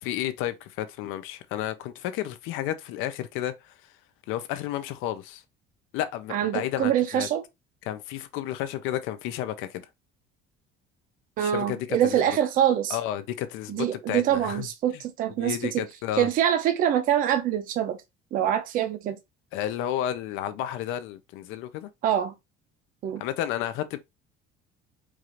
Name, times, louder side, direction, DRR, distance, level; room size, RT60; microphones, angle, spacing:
voice 1, 0.0-3.7 4.3-5.4 5.9-7.3 7.8-9.9 11.4-12.4 12.9-14.7 14.9-15.0 15.4-16.3 19.5-21.9 23.2-24.0, left 12 dB, 75° left, 0.6 m, -32 dB
voice 2, 6.3-7.4 11.4-13.0 13.7-15.8 16.2-18.0 18.3-19.2 22.0-22.3 23.0-23.2, right 10 dB, 45° right, 0.6 m, -25 dB
4.8 x 2.5 x 2.8 m
cardioid pair, 175°, 21 cm